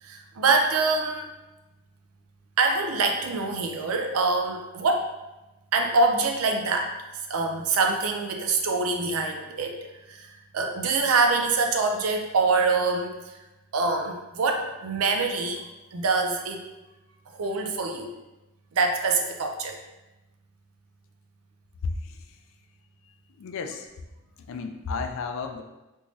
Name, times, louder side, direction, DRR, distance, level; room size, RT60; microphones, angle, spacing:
voice 1, 0.0-1.3 2.6-5.1 5.7-6.9 7.3-9.8 10.1-13.2 13.7-16.7 17.3-18.1 18.7-19.8, right 3 dB, 75° right, 4 dB, 0.5 m, -25 dB
voice 2, 21.8-22.4 23.4-23.9 24.5-25.6, left 4 dB, 65° left, 6 dB, 0.4 m, -32 dB
3.5 x 3.0 x 2.6 m, 1.0 s
head